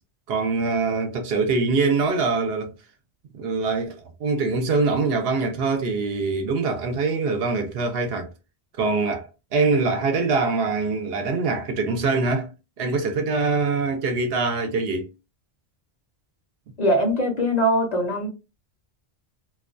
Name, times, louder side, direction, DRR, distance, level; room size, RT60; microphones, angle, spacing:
voice 1, 0.3-2.7 3.3-3.9 4.2-8.3 8.8-12.5 12.8-15.1, right 4 dB, 70° right, 0.8 m, -23 dB
voice 2, 16.8-18.3, equal, 45° left, 0.7 m, -21 dB
2.3 x 2.2 x 2.4 m
omnidirectional pair, 1.1 m